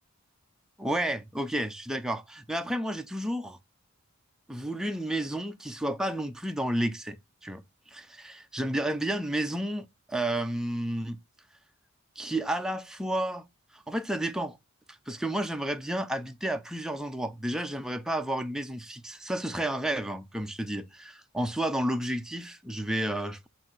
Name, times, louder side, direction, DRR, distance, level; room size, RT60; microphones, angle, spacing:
voice 1, 0.8-3.6 4.5-7.2 7.4-7.6 7.9-11.2 12.2-13.4 13.7-14.6 14.9-23.5, right 1 dB, ahead, 0.4 m, -31 dB
7.8 x 2.6 x 5.9 m
head